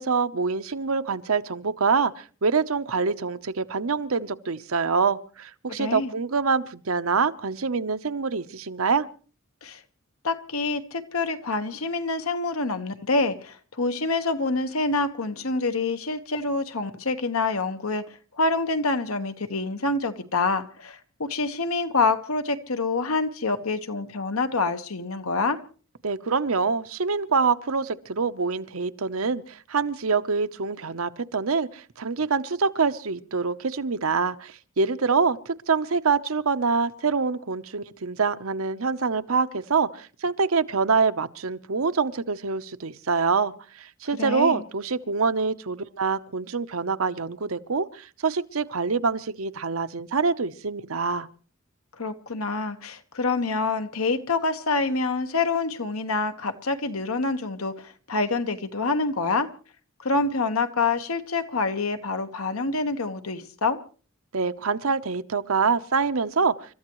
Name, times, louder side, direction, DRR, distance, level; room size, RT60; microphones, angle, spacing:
voice 1, 0.0-9.1 26.0-51.3 64.3-66.5, right 5 dB, 80° right, 0.9 m, -25 dB
voice 2, 5.7-6.1 9.6-9.8 10.2-25.6 44.2-44.6 52.0-59.5 60.0-63.8, left 3 dB, 90° left, 1.4 m, -26 dB
29.5 x 14.0 x 3.1 m
head